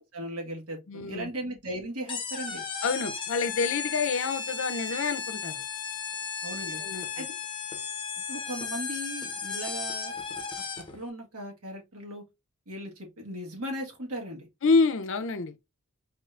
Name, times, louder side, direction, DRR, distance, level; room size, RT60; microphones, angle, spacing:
voice 1, 0.1-2.6 6.4-6.8 7.1-7.3 8.3-10.1 10.6-10.7 10.9-12.2 12.7-14.5, right 1 dB, 85° right, 1.5 m, -37 dB
voice 2, 0.9-1.3 2.8-5.6 6.5-7.3 14.6-15.6, left 4 dB, 60° left, 0.5 m, -28 dB
sound 1, 2.1-11.0, left 5 dB, 25° left, 0.7 m, -35 dB
4.1 x 3.3 x 2.5 m
head